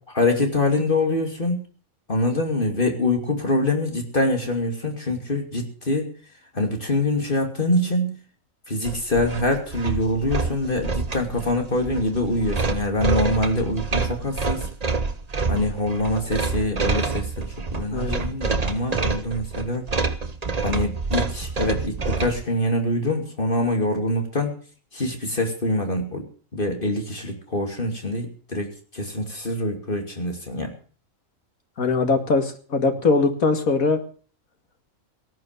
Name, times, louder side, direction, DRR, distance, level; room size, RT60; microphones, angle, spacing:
voice 1, 0.1-1.6 2.1-6.1 6.5-8.2 8.7-14.7 15.5-19.9 20.6-24.5 24.9-26.3 26.5-30.7, left 1 dB, 40° left, 3 dB, 2.9 m, -24 dB
sound 1, 8.8-22.4, right 4 dB, 30° right, 1.1 m, -27 dB
voice 2, 17.9-18.2 31.8-34.0, left 3 dB, 90° left, 6 dB, 2.5 m, -21 dB
18.0 x 9.5 x 6.6 m, 0.42 s
omnidirectional pair, 1.4 m